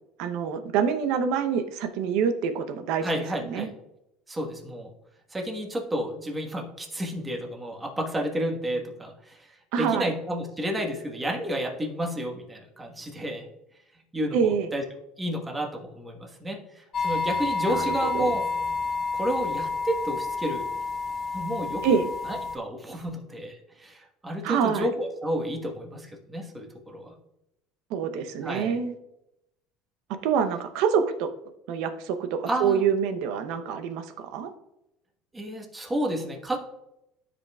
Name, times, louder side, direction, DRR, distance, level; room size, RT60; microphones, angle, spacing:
voice 1, 0.2-3.0 3.4-3.7 9.7-10.1 14.3-14.7 17.6-17.9 18.1-18.4 21.8-22.1 24.4-24.9 27.9-28.9 30.2-31.3 31.7-34.5, right 7 dB, 70° right, 9 dB, 0.8 m, -26 dB
voice 2, 3.0-3.7 4.3-4.9 5.3-9.5 9.8-13.5 14.1-14.8 15.2-18.4 19.1-20.6 21.3-22.0 22.2-27.1 28.4-28.7 32.5-32.8 35.3-36.6, equal, 15° right, 1 dB, 1.4 m, -31 dB
sound 1, 16.9-22.6, left 4 dB, 30° left, 1.0 m, -29 dB
12.5 x 5.1 x 2.4 m, 0.86 s
cardioid pair, 125°, 0 cm